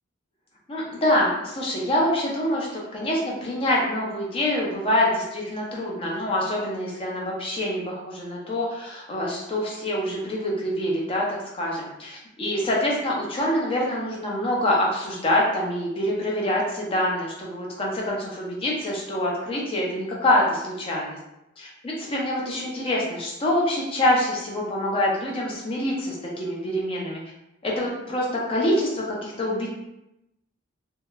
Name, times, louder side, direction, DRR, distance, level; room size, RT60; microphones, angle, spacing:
voice 1, 0.7-21.2 21.6-27.2 27.6-29.7, left 1 dB, 25° left, -3 dB, 0.5 m, -25 dB
2.8 x 2.0 x 2.2 m, 0.88 s
head